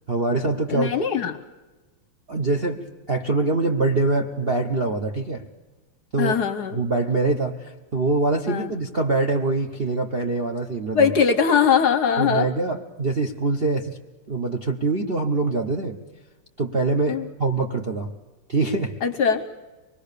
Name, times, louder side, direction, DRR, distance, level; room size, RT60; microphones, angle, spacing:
voice 1, 0.1-0.9 2.3-2.8 3.1-5.4 6.1-6.4 6.7-11.1 12.2-14.0 14.3-16.0 16.6-18.1 18.5-19.0, right 3 dB, 40° right, 4 dB, 0.8 m, -24 dB
voice 2, 0.7-1.4 6.2-6.8 8.5-8.7 10.9-12.5 17.1-17.2 19.0-19.4, left 7 dB, 60° left, 11 dB, 1.2 m, -21 dB
25.5 x 21.0 x 6.8 m, 1.2 s
omnidirectional pair, 2.4 m